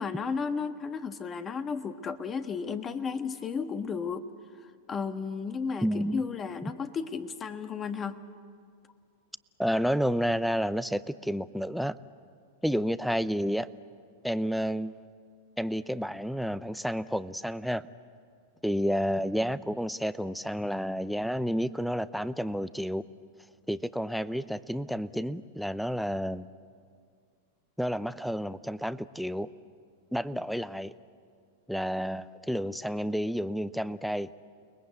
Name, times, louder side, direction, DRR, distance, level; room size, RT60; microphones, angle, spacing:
voice 1, 0.0-4.3 4.6-8.2, left 5 dB, 25° left, 8 dB, 1.5 m, -34 dB
voice 2, 5.8-6.2 9.6-11.9 12.6-13.7 14.2-15.1 15.6-17.8 18.6-23.0 23.7-26.5 27.8-29.5 30.1-30.9 31.7-34.3, equal, ahead, 14 dB, 0.7 m, -30 dB
29.5 x 20.5 x 8.4 m, 2.1 s
hypercardioid pair, 105°, 0 cm